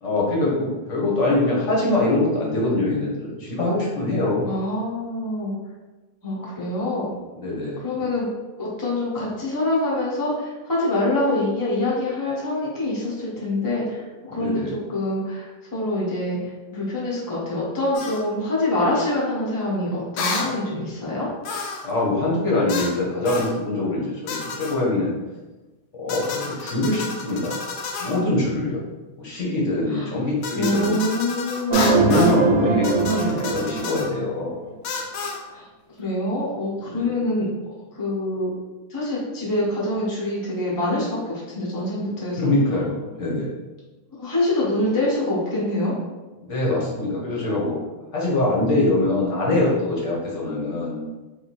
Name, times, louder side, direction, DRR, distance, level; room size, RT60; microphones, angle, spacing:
voice 1, 0.0-4.5 7.4-7.8 14.3-14.7 21.8-25.2 25.9-27.5 28.0-28.8 29.2-31.0 31.9-34.5 36.9-37.2 42.4-43.5 46.4-47.8 48.1-51.0, left 2 dB, 45° left, -4 dB, 1.2 m, -23 dB
voice 2, 4.4-5.6 6.2-7.1 7.8-8.3 8.6-15.4 15.7-16.4 16.7-21.3 29.9-30.1 30.5-32.3 35.5-35.6 36.0-37.5 37.9-38.5 38.9-42.5 44.2-45.9, left 1 dB, 15° left, -6 dB, 0.8 m, -25 dB
sound 1, 17.9-18.2 20.2-20.5 21.4-21.9 22.7-23.0 23.3-23.5 24.3-24.8 26.1-28.2 30.4-32.4 32.8-34.1 34.8-35.4, left 4 dB, 70° left, 1.2 m, -30 dB
sound 2, 31.7-34.5, right 4 dB, 85° right, 1.4 m, -21 dB
3.7 x 2.7 x 4.2 m, 1.2 s
omnidirectional pair, 2.2 m